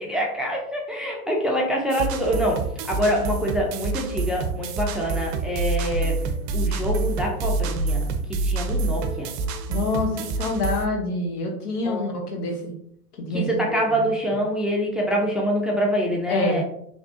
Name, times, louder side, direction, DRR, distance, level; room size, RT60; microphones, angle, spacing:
voice 1, 0.0-2.6 2.9-6.2 6.5-8.1 8.4-9.3 11.8-12.0 13.5-16.6, equal, ahead, -1 dB, 0.6 m, -25 dB
sound 1, 1.9-10.9, right 3 dB, 45° right, 0.6 m, -27 dB
voice 2, 9.7-12.7 13.2-14.0 16.3-16.6, left 2 dB, 70° left, 1 dB, 1.3 m, -27 dB
4.2 x 3.2 x 2.8 m, 0.70 s
hypercardioid pair, 95°, 47 cm